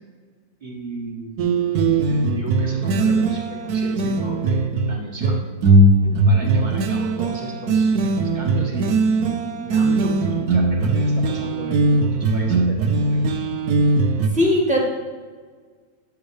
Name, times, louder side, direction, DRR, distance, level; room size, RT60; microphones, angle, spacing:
voice 1, 0.6-1.5 2.1-5.4 6.2-13.4, right 1 dB, 30° right, -2 dB, 1.2 m, -34 dB
sound 1, 1.4-14.3, right 2 dB, 65° right, 1.1 m, -19 dB
voice 2, 6.0-6.4 14.3-14.8, left 1 dB, 5° right, -5 dB, 1.8 m, -21 dB
11.0 x 7.1 x 3.3 m, 1.5 s
omnidirectional pair, 2.0 m